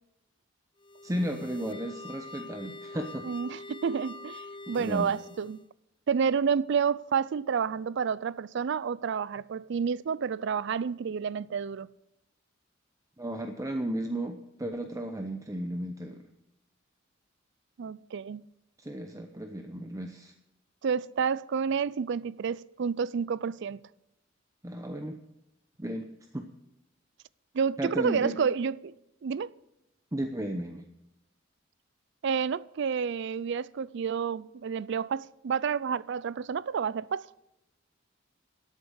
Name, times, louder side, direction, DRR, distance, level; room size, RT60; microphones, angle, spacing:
sound 1, 0.8-5.7, left 2 dB, 25° left, 0.5 m, -44 dB
voice 1, 1.0-3.3 4.7-5.1 13.2-16.3 18.8-20.3 24.6-25.2 25.8-26.1 26.3-26.5 27.8-28.4 30.1-30.9, right 1 dB, 15° right, 0.8 m, -34 dB
voice 2, 3.2-5.6 6.1-11.9 17.8-18.5 20.8-23.8 27.5-28.9 29.2-29.5 32.2-37.3, right 6 dB, 65° right, 0.4 m, -30 dB
13.0 x 8.3 x 6.4 m
head